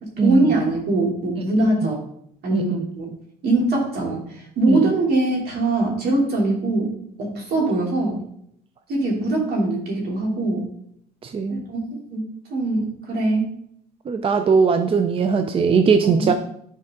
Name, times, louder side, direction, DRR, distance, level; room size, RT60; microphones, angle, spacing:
voice 1, 0.0-2.0 2.4-3.1 3.4-6.9 7.2-8.2 8.9-10.6 11.5-12.2 12.5-13.5 16.1-16.3, right 2 dB, 70° right, -2 dB, 2.9 m, -22 dB
voice 2, 11.2-11.6 14.1-16.3, right 5 dB, 35° right, 8 dB, 0.5 m, -19 dB
10.0 x 4.6 x 3.7 m, 0.70 s
cardioid pair, 110°, 17 cm